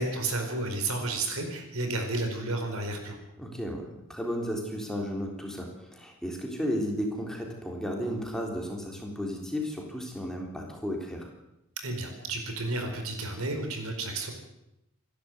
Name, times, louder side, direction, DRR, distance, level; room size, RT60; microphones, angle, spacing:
voice 1, 0.0-3.2 11.8-14.3, right 2 dB, 85° right, 4 dB, 4.8 m, -32 dB
voice 2, 3.4-11.3, equal, 5° left, 0 dB, 3.7 m, -34 dB
27.5 x 12.0 x 8.0 m, 0.87 s
head